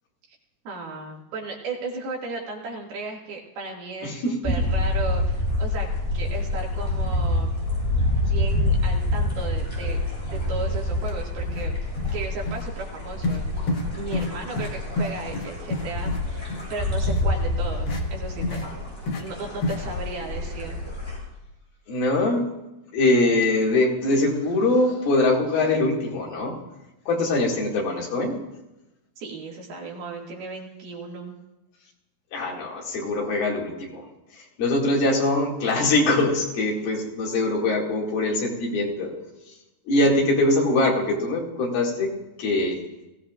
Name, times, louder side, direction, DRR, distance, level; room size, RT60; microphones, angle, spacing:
voice 1, 0.7-7.6 8.2-10.0 10.3-11.8 12.1-18.8 19.2-20.8 29.2-31.3, right 3 dB, 85° right, -1 dB, 4.2 m, -35 dB
voice 2, 4.0-4.5 21.9-22.4 22.9-26.6 27.1-28.3 32.3-34.0 34.3-39.1 39.9-42.8, left 2 dB, 75° left, -2 dB, 4.2 m, -23 dB
sound 1, 4.4-21.2, left 1 dB, 5° left, 6.4 m, -27 dB
sound 2, 11.0-11.1 11.4-11.7 12.0-12.2 12.5-12.6 13.2-13.4 13.7-13.9 14.1-14.3 14.6-14.7 15.0-16.2 16.5-16.6 17.1-17.2 17.9-18.0 18.4-18.6 19.1-19.2 19.6-19.8, left 2 dB, 60° left, 1.2 m, -28 dB
21.5 x 16.0 x 2.5 m, 0.98 s
omnidirectional pair, 4.3 m